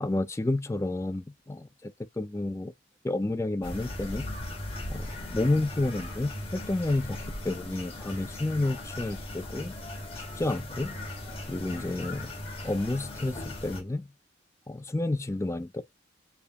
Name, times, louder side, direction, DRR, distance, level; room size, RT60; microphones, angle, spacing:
voice 1, 0.0-2.7 3.0-4.2 4.9-7.2 7.4-9.7 10.4-10.9 11.5-12.3 12.6-14.1 14.7-15.8, left 2 dB, 15° left, 0.3 m, -30 dB
sound 1, 3.6-13.8, left 1 dB, 30° left, 1.7 m, -38 dB
6.9 x 2.3 x 2.8 m
head